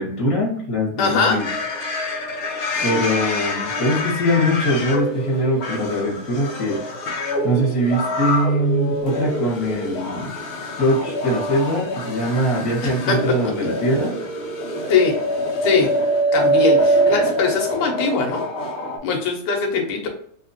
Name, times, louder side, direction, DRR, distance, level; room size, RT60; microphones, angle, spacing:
voice 1, 0.0-1.5 2.8-6.8 7.4-10.3 10.8-14.3, equal, 15° left, -5 dB, 1.1 m, -22 dB
voice 2, 1.0-1.4 13.1-13.2 14.9-15.1 15.6-15.9 16.3-18.5 19.0-20.1, left 5 dB, 85° left, 2 dB, 2.5 m, -21 dB
sound 1, 1.3-19.0, equal, 65° left, 1.4 m, -25 dB
4.9 x 3.0 x 2.9 m, 0.62 s
omnidirectional pair, 3.6 m